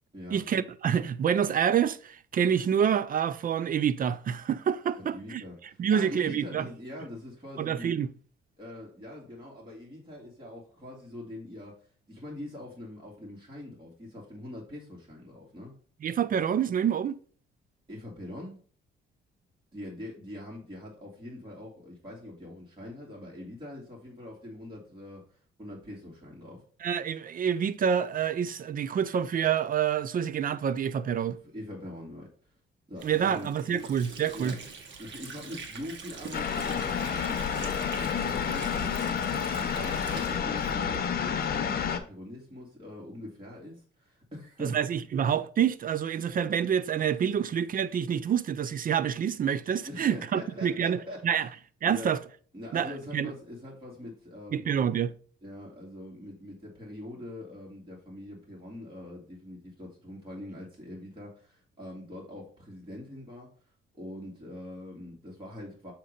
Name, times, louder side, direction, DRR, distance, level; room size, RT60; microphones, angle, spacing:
voice 1, 0.3-5.4 5.8-6.7 7.6-8.1 16.0-17.2 26.8-31.4 33.0-34.6 44.6-51.0 51.2-51.5 51.8-52.2 52.7-53.3 54.5-55.1, right 8 dB, 45° right, 0.5 m, -27 dB
voice 2, 5.0-8.0 8.6-15.7 17.9-18.6 19.7-26.6 31.4-32.5 32.9-33.8 34.3-34.6 35.0-44.9 49.8-51.5 51.9-52.1 52.5-54.9 55.4-63.5 63.9-65.9, left 1 dB, 25° right, 2.4 m, -43 dB
Water / Sink (filling or washing), 33.0-41.5, right 4 dB, 65° right, 1.4 m, -45 dB
sound 1, 36.3-42.0, left 7 dB, 50° left, 0.8 m, -30 dB
7.3 x 2.9 x 5.1 m
cardioid pair, 90°, 20 cm